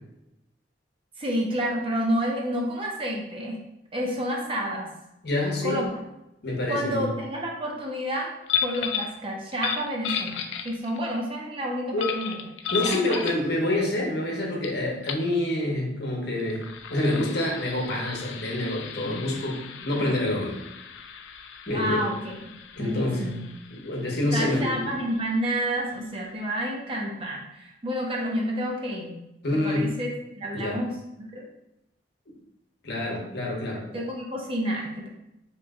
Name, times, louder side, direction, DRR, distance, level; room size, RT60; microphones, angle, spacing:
voice 1, 1.2-3.6 3.9-4.9 5.6-6.0 6.7-8.3 8.6-12.4 12.8-13.2 20.0-20.1 21.7-22.5 22.8-23.4 24.3-29.2 29.6-30.9 31.3-31.4 33.9-35.1, equal, 30° right, -1 dB, 0.6 m, -29 dB
voice 2, 5.2-5.9 6.4-7.1 11.9-12.2 12.7-20.6 21.7-22.0 22.8-23.3 23.7-24.9 29.4-29.9 30.5-30.8 32.3-32.4 32.8-33.9, left 1 dB, 65° left, -1 dB, 0.9 m, -27 dB
sound 1, 8.5-9.1 9.5-11.1 12.0-13.5 14.6-14.7 15.0-15.3 16.3-25.6, left 8 dB, 80° left, 0.3 m, -34 dB
3.1 x 3.0 x 3.5 m, 0.87 s
head